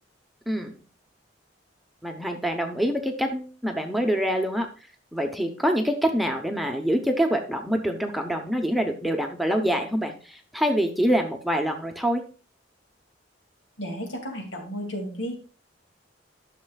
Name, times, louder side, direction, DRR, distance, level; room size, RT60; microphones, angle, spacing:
voice 1, 2.0-4.7 5.1-12.2, equal, ahead, 3 dB, 0.8 m, -25 dB
voice 2, 13.8-15.4, equal, 85° left, 1 dB, 2.4 m, -33 dB
12.0 x 6.5 x 2.4 m, 0.37 s
head